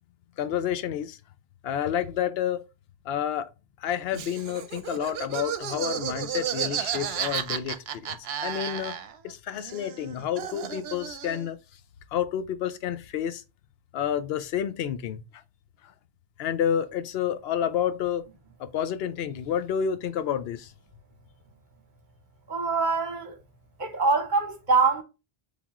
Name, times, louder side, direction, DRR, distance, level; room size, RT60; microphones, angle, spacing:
voice 1, 0.4-1.2 1.6-2.6 3.1-3.5 3.8-8.9 9.2-11.6 12.1-13.4 13.9-15.2 15.8-15.9 16.4-18.3 18.6-20.7, left 9 dB, 75° left, 0.8 m, -29 dB
Laughter, 4.1-9.3 9.6-11.5, right 9 dB, 75° right, 0.8 m, -33 dB
voice 2, 22.5-23.4 23.8-25.0, right 4 dB, 50° right, 1.1 m, -24 dB
3.6 x 3.5 x 2.9 m
omnidirectional pair, 1.1 m